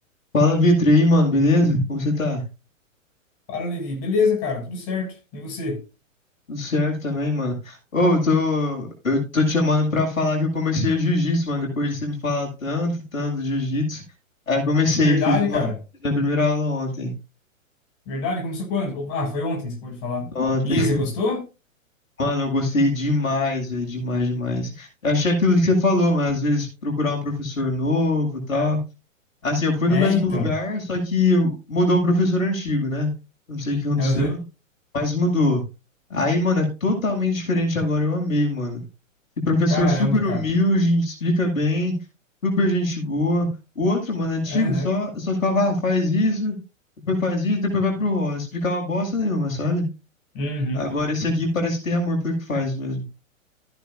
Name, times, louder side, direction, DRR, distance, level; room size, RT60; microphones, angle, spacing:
voice 1, 0.3-2.4 6.5-14.0 14.5-15.6 16.0-17.1 20.3-20.9 22.2-28.8 29.4-33.1 33.5-34.4 34.9-35.6 36.1-38.8 39.4-41.9 42.4-43.5 43.8-46.6 47.1-49.9 50.7-53.0, left 2 dB, 80° left, 7.5 m, -22 dB
voice 2, 3.5-5.8 15.0-15.8 18.1-20.3 20.6-21.5 29.9-30.5 34.0-34.4 39.7-40.4 44.5-44.9 50.3-50.8, left 3 dB, 35° left, 6.8 m, -25 dB
15.0 x 11.0 x 2.6 m
hypercardioid pair, 115°, 40 cm